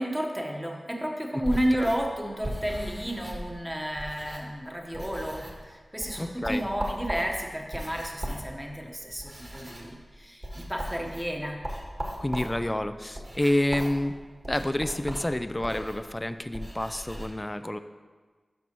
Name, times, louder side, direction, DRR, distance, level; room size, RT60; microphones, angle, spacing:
voice 1, 0.0-11.6, equal, 10° right, 1 dB, 1.1 m, -32 dB
sound 1, 1.4-4.7 4.9-5.7 6.0-17.3, equal, 30° right, 1.5 m, -38 dB
voice 2, 6.2-6.7 12.2-14.1 14.5-17.8, left 1 dB, 20° left, 10 dB, 0.3 m, -28 dB
12.0 x 5.4 x 3.0 m, 1.4 s
wide cardioid pair, 75°, 0 cm